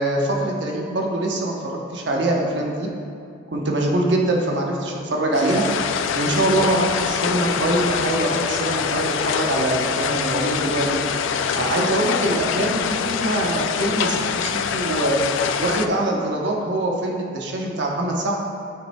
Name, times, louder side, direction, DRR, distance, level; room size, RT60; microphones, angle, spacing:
voice 1, 0.0-2.9 3.5-5.6 6.1-11.0 11.5-15.2 15.6-18.4, right 1 dB, 70° right, -1 dB, 0.9 m, -23 dB
sound 1, 5.3-15.9, left 7 dB, 90° left, 0.3 m, -24 dB
9.4 x 5.7 x 2.2 m, 2.4 s
head